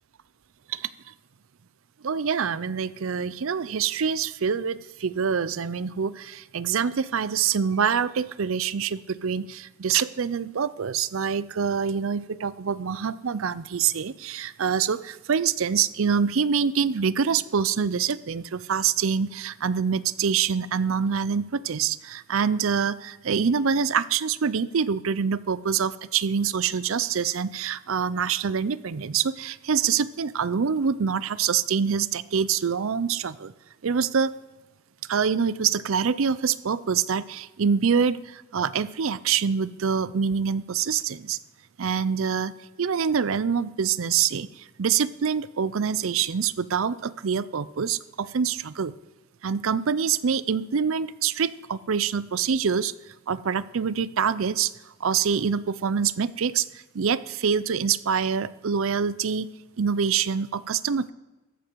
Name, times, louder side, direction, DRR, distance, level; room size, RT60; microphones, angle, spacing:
voice 1, 2.0-33.5 33.8-34.4 35.1-41.4 41.8-48.9 49.4-52.9 53.3-54.7 55.0-59.5 59.8-61.1, right 6 dB, 65° right, 17 dB, 0.5 m, -25 dB
14.5 x 9.9 x 4.6 m, 1.1 s
head